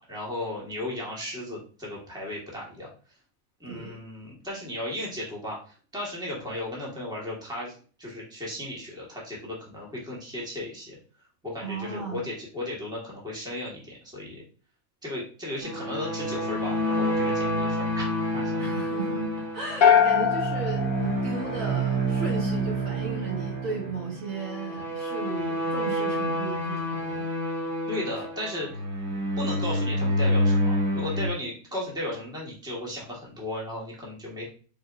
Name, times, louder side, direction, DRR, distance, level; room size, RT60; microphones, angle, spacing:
voice 1, 0.0-2.9 3.6-11.0 11.4-14.4 15.0-18.0 18.3-18.6 27.9-28.7 29.4-34.5, left 1 dB, 5° right, -5 dB, 1.5 m, -35 dB
voice 2, 3.7-4.0 11.6-12.2 18.6-27.3 29.1-29.2, right 4 dB, 60° right, -2 dB, 1.6 m, -35 dB
sound 1, 15.6-31.3, equal, 25° right, 2.5 m, -28 dB
sound 2, 19.8-22.1, left 8 dB, 55° left, 0.6 m, -22 dB
4.8 x 4.2 x 2.6 m, 0.40 s
omnidirectional pair, 1.7 m